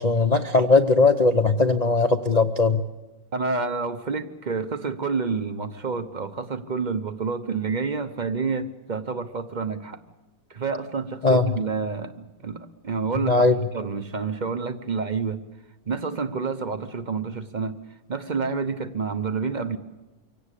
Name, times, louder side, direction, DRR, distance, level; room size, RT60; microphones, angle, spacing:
voice 1, 0.0-2.8 11.2-11.4 13.3-13.6, left 3 dB, 60° left, 6 dB, 0.4 m, -19 dB
voice 2, 3.3-10.0 10.5-13.4 13.7-15.4 15.9-17.8 18.1-19.8, right 4 dB, 40° right, 10 dB, 0.6 m, -28 dB
25.0 x 17.5 x 8.4 m, 1.1 s
omnidirectional pair, 2.1 m